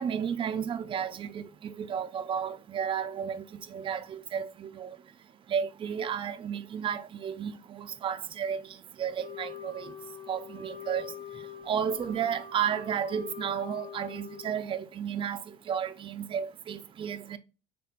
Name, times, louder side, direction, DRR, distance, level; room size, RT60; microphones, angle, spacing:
voice 1, 0.0-5.0 5.5-8.6 9.0-9.9 10.3-11.0 11.7-17.4, right 8 dB, 30° right, 0.4 m, -33 dB
Wind instrument woodwind instrument, 9.2-14.8, left 7 dB, 40° left, 1.0 m, -44 dB
4.2 x 3.3 x 2.4 m
hypercardioid pair, 80°, 18 cm